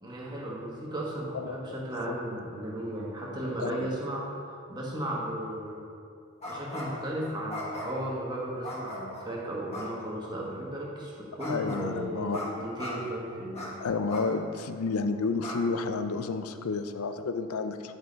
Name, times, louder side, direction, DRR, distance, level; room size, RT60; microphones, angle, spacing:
voice 1, 0.0-4.2 4.7-5.8 6.4-13.8, right 1 dB, 20° right, -4 dB, 1.3 m, -35 dB
voice 2, 1.3-1.8 2.1-2.2 3.6-3.9 11.5-12.4 13.8-17.9, left 4 dB, 85° left, 9 dB, 0.5 m, -31 dB
sound 1, 6.4-7.0 7.5-8.1 8.6-9.3 9.7-9.9 11.4-11.8 12.3-12.5 12.7-12.9 13.5-13.7 14.1-14.2 14.7-14.8 15.4-15.6, left 1 dB, 30° left, 1.5 m, -38 dB
9.8 x 5.3 x 4.0 m, 2.4 s
head